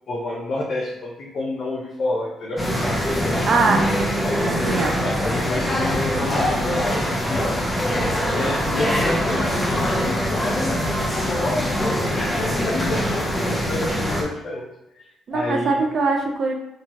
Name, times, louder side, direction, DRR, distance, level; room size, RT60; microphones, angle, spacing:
voice 1, 0.1-2.6 3.2-3.8 4.2-7.4 8.1-14.7 14.9-15.8, left 2 dB, 60° left, -4 dB, 0.5 m, -29 dB
sound 1, 2.6-14.2, equal, 5° left, 0.6 m, -23 dB
voice 2, 3.4-4.1 4.4-5.0 15.3-16.5, right 4 dB, 55° right, 2 dB, 0.4 m, -22 dB
2.8 x 2.3 x 2.9 m, 0.89 s
cardioid pair, 90°, 0 cm